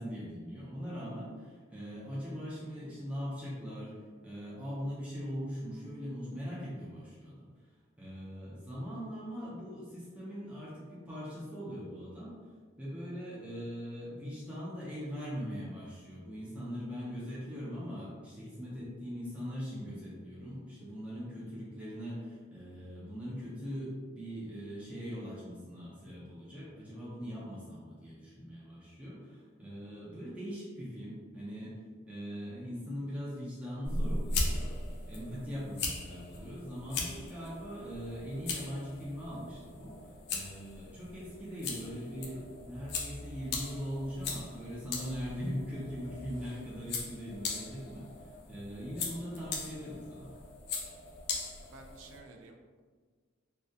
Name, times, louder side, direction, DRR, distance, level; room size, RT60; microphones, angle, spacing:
voice 1, 0.0-7.5 8.0-12.4 12.8-31.8 32.1-34.7 35.0-40.0 40.3-50.3, equal, 5° right, -8 dB, 0.4 m, -41 dB
sound 1, 33.8-52.2, left 3 dB, 55° left, 0.4 m, -39 dB
voice 2, 51.6-52.8, right 2 dB, 80° right, 2 dB, 0.3 m, -53 dB
2.2 x 2.2 x 2.6 m, 1.5 s
head